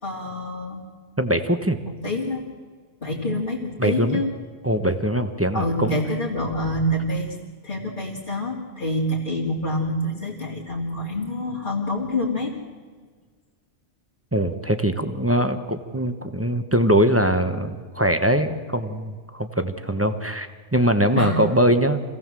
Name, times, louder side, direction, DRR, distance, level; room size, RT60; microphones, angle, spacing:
voice 1, 0.0-0.8 1.8-2.4 3.0-4.3 5.5-7.3 7.6-12.5 21.2-21.4, left 1 dB, 40° left, -5 dB, 3.0 m, -26 dB
voice 2, 1.2-1.8 3.8-4.2 4.6-6.0 14.3-22.0, right 1 dB, 10° right, 8 dB, 1.1 m, -22 dB
25.5 x 17.0 x 7.6 m, 1.5 s
omnidirectional pair, 1.2 m